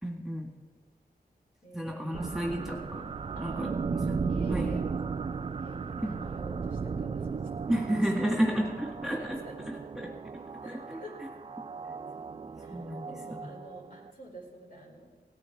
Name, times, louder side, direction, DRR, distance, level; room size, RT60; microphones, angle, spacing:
voice 1, 0.0-0.5 1.7-3.1 3.4-4.2 4.5-4.7 6.0-6.1 7.7-9.4 9.7-10.1 10.5-11.0 12.7-13.5, right 1 dB, ahead, 0 dB, 1.8 m, -32 dB
voice 2, 1.6-2.3 3.4-3.8 4.3-4.9 5.6-7.8 8.5-8.6 9.1-9.6 10.6-11.2 12.6-15.1, equal, 55° left, -2 dB, 4.3 m, -49 dB
sound 1, 2.1-14.1, right 5 dB, 35° right, 0.4 m, -36 dB
17.5 x 9.8 x 4.8 m, 1.4 s
wide cardioid pair, 80°, 17 cm